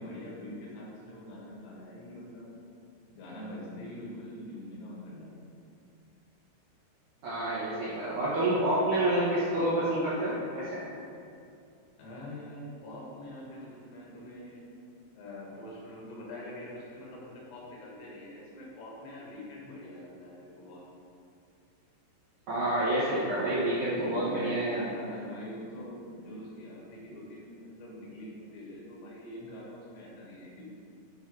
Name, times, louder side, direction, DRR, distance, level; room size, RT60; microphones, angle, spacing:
voice 1, 0.0-2.5 3.1-5.3 12.0-14.7 15.1-20.9 24.0-30.6, left 1 dB, 65° left, -5 dB, 1.7 m, -44 dB
voice 2, 7.2-10.8 22.5-24.8, right 1 dB, 75° right, -8 dB, 1.8 m, -28 dB
7.9 x 4.4 x 4.8 m, 2.5 s
omnidirectional pair, 5.1 m